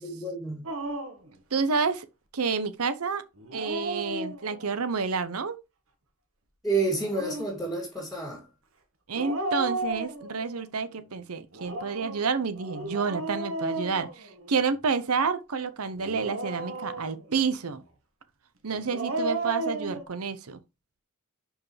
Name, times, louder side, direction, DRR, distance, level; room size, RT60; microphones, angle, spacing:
voice 1, 0.0-0.7 6.6-8.5, right 3 dB, ahead, 2.8 m, -29 dB
Dog, 0.6-1.3 3.4-4.7 6.8-7.6 9.1-10.6 11.5-14.7 16.0-17.4 18.7-20.0, right 2 dB, 65° right, 1.4 m, -34 dB
voice 2, 1.5-2.1 2.3-3.2 3.5-5.6 9.1-17.8 18.6-20.6, right 5 dB, 80° right, 0.8 m, -29 dB
11.0 x 4.7 x 3.3 m
head